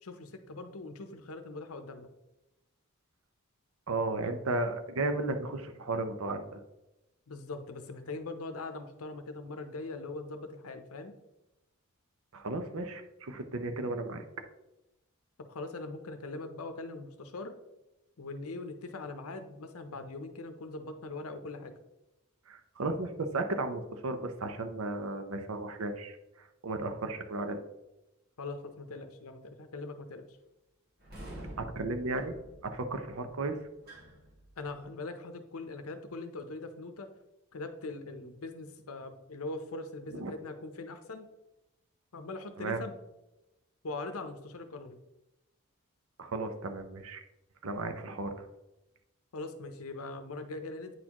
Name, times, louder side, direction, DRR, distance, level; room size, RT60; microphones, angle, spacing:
voice 1, 0.0-2.1 7.3-11.1 15.4-17.6 18.2-21.7 28.4-30.4 34.6-37.1 37.5-41.3 42.1-42.9 43.8-45.0 49.3-50.9, left 3 dB, 75° left, 8 dB, 0.7 m, -41 dB
voice 2, 3.9-6.6 12.3-14.2 22.5-27.6 31.6-32.3 32.6-33.6 40.1-40.3 42.6-42.8 46.2-47.2 47.6-48.5, right 2 dB, 70° right, 7 dB, 0.7 m, -34 dB
sound 1, 31.0-34.9, right 1 dB, 45° right, 1.8 m, -48 dB
9.0 x 4.2 x 2.9 m, 0.96 s
head